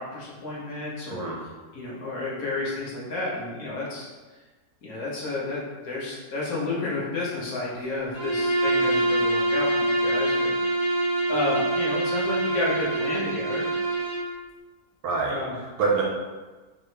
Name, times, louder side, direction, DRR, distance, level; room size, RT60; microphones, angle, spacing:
voice 1, 0.0-1.3 1.7-4.1 4.8-10.6 11.3-13.7 15.3-15.6, left 2 dB, 60° left, -5 dB, 1.2 m, -31 dB
Bowed string instrument, 8.1-14.3, right 2 dB, 35° right, 0.5 m, -25 dB
voice 2, 15.0-16.0, right 4 dB, 70° right, -3 dB, 1.1 m, -26 dB
3.7 x 2.9 x 3.2 m, 1.3 s
omnidirectional pair, 1.9 m